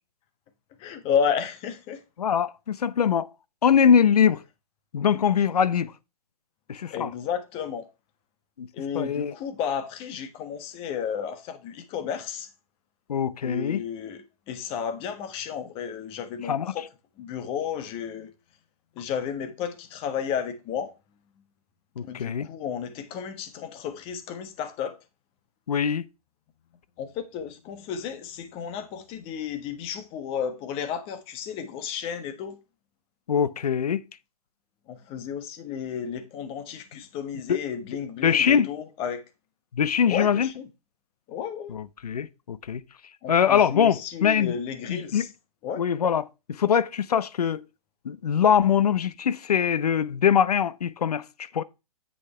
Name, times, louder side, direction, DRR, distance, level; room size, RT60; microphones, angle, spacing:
voice 1, 0.8-2.0 6.9-7.9 8.7-12.5 13.4-16.9 17.2-18.3 18.9-20.9 22.0-25.0 27.0-32.6 34.9-39.2 40.1-40.7 41.3-41.8 43.2-45.3 45.6-45.8, left 7 dB, 30° left, 1.3 m, -32 dB
voice 2, 2.2-3.3 3.6-4.4 4.9-5.9 6.7-7.1 8.6-8.7 8.9-9.3 13.1-13.8 16.5-16.7 22.0-22.5 25.7-26.0 33.3-34.0 37.5-37.6 38.2-38.7 39.7-40.5 41.7-42.8 43.3-44.5 44.9-45.3 45.8-47.6 48.0-51.2 51.5-51.6, left 8 dB, 85° left, 0.7 m, -22 dB
8.0 x 6.5 x 3.3 m
hypercardioid pair, 135°, 19 cm